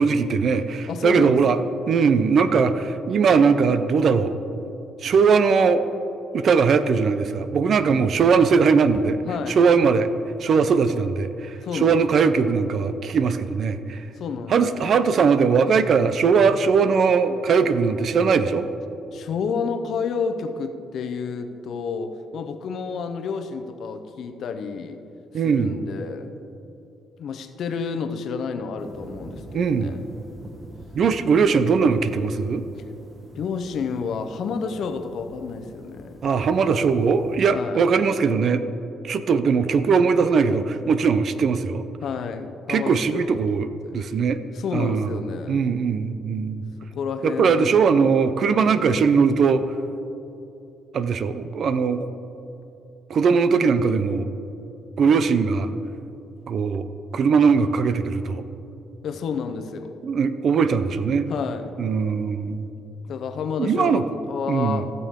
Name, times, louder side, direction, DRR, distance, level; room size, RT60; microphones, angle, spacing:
voice 1, 0.0-1.6 1.9-4.3 5.0-5.8 6.3-9.2 9.5-10.1 10.4-14.1 14.5-18.7 25.3-25.8 29.5-30.0 30.9-32.6 36.2-38.6 39.0-41.9 42.7-44.4 44.7-45.1 45.5-46.7 47.2-49.8 50.9-52.1 53.1-54.3 55.0-55.7 56.5-56.9 57.1-58.4 60.0-61.3 61.8-62.7 63.6-64.0 64.5-64.9, right 5 dB, 60° right, 12 dB, 0.5 m, -20 dB
voice 2, 0.9-1.6 9.3-9.6 11.6-12.0 14.2-14.7 19.1-25.0 25.4-26.3 27.2-30.0 33.3-36.2 37.5-37.8 42.0-43.3 43.8-44.0 44.5-45.6 46.9-47.7 59.0-60.0 61.3-61.7 63.0-64.9, left 5 dB, 70° left, 8 dB, 0.7 m, -30 dB
sound 1, 28.8-37.4, right 2 dB, 35° right, 1.2 m, -45 dB
15.5 x 6.9 x 3.7 m, 2.9 s
cardioid pair, 90°, 0 cm